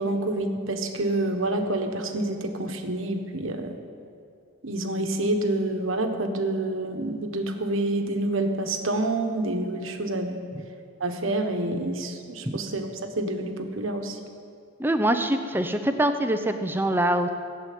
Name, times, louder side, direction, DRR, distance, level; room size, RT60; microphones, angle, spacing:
voice 1, 0.0-3.7 4.6-10.4 11.0-12.9 13.2-14.2, right 2 dB, 65° right, 5 dB, 1.3 m, -27 dB
voice 2, 14.8-17.3, right 1 dB, 10° right, 8 dB, 0.6 m, -24 dB
16.0 x 7.9 x 9.3 m, 2.4 s
head